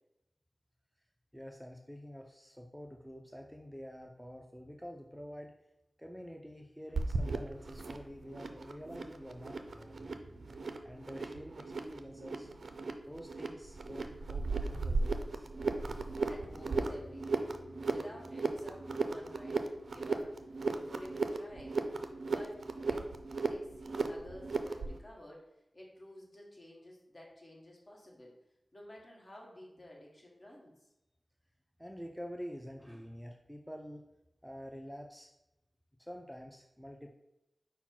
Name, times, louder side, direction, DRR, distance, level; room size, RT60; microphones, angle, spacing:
voice 1, 1.3-5.5 6.0-10.1 10.5-12.5 13.0-15.5 31.8-34.1 34.4-35.3 36.0-37.1, equal, ahead, 1 dB, 0.4 m, -48 dB
sound 1, 6.9-25.0, right 3 dB, 75° right, 0.3 m, -36 dB
voice 2, 16.3-21.8 22.2-25.4 25.7-28.3 28.7-30.7, left 1 dB, 40° left, -2 dB, 1.3 m, -52 dB
5.6 x 2.2 x 4.4 m, 0.90 s
wide cardioid pair, 65°, 0 cm